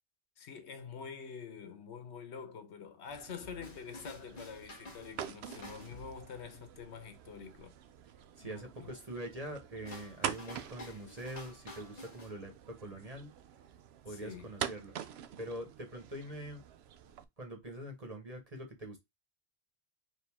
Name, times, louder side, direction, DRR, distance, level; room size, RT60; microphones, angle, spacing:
voice 1, 0.4-7.7 8.4-8.9 14.1-14.5, left 6 dB, 85° left, 1.2 m, -46 dB
sound 1, 3.1-17.2, right 9 dB, 75° right, 0.8 m, -46 dB
sound 2, 3.4-6.9 9.8-12.4, left 1 dB, 40° left, 1.0 m, -51 dB
voice 2, 8.4-13.3 14.0-14.9 15.4-16.6 17.4-19.0, right 1 dB, 35° right, 1.1 m, -44 dB
4.5 x 2.7 x 3.4 m
omnidirectional pair, 1.1 m